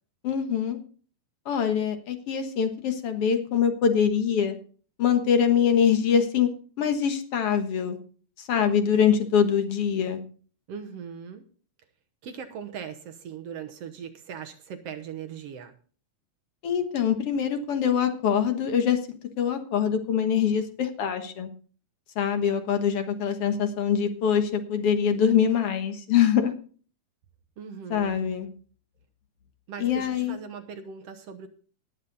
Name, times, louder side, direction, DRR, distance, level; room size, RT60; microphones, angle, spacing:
voice 1, 0.2-0.8 1.5-4.6 5.0-6.5 6.8-8.0 8.4-10.2 16.6-21.5 22.2-26.5 27.9-28.5 29.8-30.4, left 8 dB, 55° left, 7 dB, 2.0 m, -24 dB
voice 2, 10.7-11.4 12.2-15.7 27.6-28.3 29.7-31.5, right 7 dB, 65° right, 7 dB, 1.8 m, -39 dB
19.0 x 7.4 x 4.0 m, 0.42 s
omnidirectional pair, 3.6 m